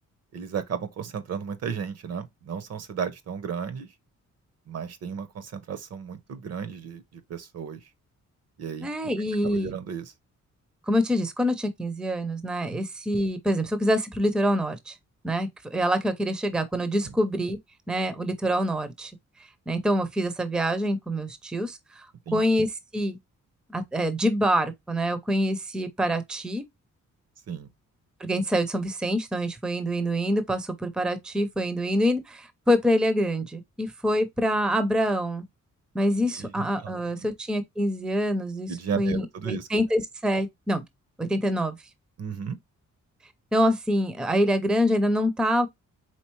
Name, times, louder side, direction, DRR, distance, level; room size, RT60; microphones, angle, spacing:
voice 1, 0.3-3.9 4.7-7.0 7.3-7.8 8.6-8.9 9.4-10.1 12.7-12.8 17.0-17.1 22.3-22.4 27.5-27.7 36.4-36.5 36.8-36.9 38.7-39.7 42.2-42.6, right 7 dB, 55° right, 0.7 m, -34 dB
voice 2, 8.8-9.7 10.9-14.9 15.2-17.6 17.9-19.1 19.7-22.0 22.3-23.2 23.7-26.6 28.2-35.4 35.9-40.8 41.2-41.8 43.5-45.7, equal, 5° right, 0.5 m, -26 dB
4.4 x 3.8 x 3.0 m
wide cardioid pair, 170°, 30 cm